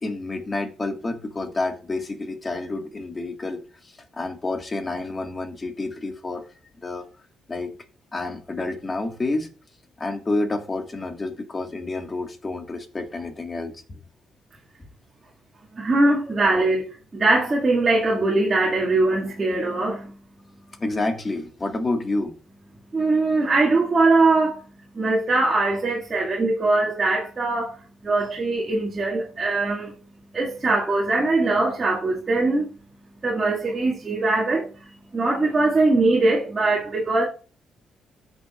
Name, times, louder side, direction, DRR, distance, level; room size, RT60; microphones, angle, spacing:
voice 1, 0.0-6.4 6.8-7.0 7.5-7.7 8.1-9.5 10.0-14.0 20.8-22.3, left 2 dB, 30° left, 1.7 m, -29 dB
voice 2, 15.7-20.2 22.9-24.6 24.9-29.9 30.3-32.7 33.2-37.3, right 2 dB, 30° right, 2.1 m, -21 dB
14.0 x 6.2 x 2.5 m
cardioid pair, 90°, 0 cm